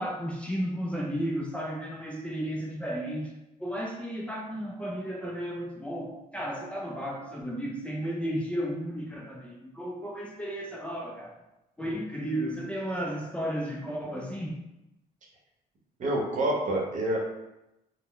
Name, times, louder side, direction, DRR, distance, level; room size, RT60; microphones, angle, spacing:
voice 1, 0.0-3.3 3.6-11.4 11.8-14.5, equal, 5° left, -2 dB, 0.3 m, -33 dB
voice 2, 16.0-17.2, right 1 dB, 45° right, -2 dB, 0.8 m, -27 dB
2.1 x 2.0 x 3.6 m, 0.92 s
cardioid pair, 110°, 17 cm